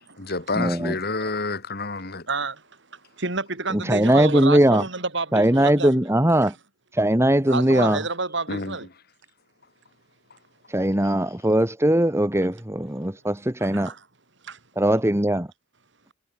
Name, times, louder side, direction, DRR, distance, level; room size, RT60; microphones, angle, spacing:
voice 1, 0.0-2.3 8.5-8.8, left 3 dB, 50° left, 3.5 m, -29 dB
voice 2, 0.6-1.0 3.7-4.8 5.3-6.5 6.9-8.0 10.7-13.9 14.8-15.5, right 1 dB, 15° right, 1.9 m, -20 dB
voice 3, 2.3-6.0 6.4-6.5 7.5-8.9 13.6-14.0 14.4-14.6, right 3 dB, 60° right, 5.5 m, -30 dB
head